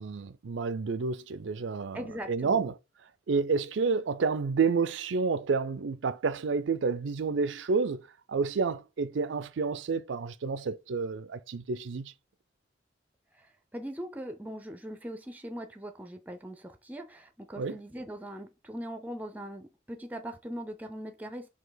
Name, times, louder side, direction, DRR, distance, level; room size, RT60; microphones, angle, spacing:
voice 1, 0.0-2.8 3.3-12.1 17.6-17.8, right 4 dB, 80° right, 0.5 m, -30 dB
voice 2, 1.9-2.6 13.3-21.5, equal, 10° right, 0.5 m, -40 dB
4.7 x 2.8 x 3.9 m
head